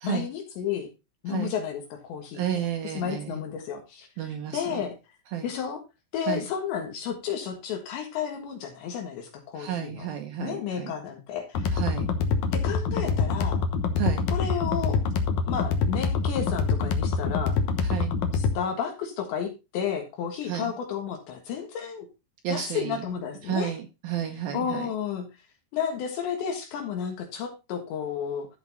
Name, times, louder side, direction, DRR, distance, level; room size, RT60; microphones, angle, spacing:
voice 1, 0.0-0.9 1.2-2.4 2.9-4.3 4.5-5.0 5.4-5.8 6.1-10.1 10.4-11.8 12.5-13.6 14.3-15.0 15.5-17.6 18.3-22.1 22.5-23.7 24.5-25.3 25.7-28.5, left 8 dB, 75° left, 4 dB, 3.7 m, -32 dB
voice 2, 2.4-3.4 4.2-4.8 5.3-5.5 6.3-6.5 9.5-10.9 11.7-12.1 14.0-14.3 17.8-18.1 20.4-20.7 22.4-23.1 23.4-24.9, right 9 dB, 70° right, 5 dB, 2.4 m, -31 dB
sound 1, 11.5-18.6, left 5 dB, 90° left, 1.6 m, -25 dB
13.5 x 5.2 x 4.1 m, 0.26 s
omnidirectional pair, 5.3 m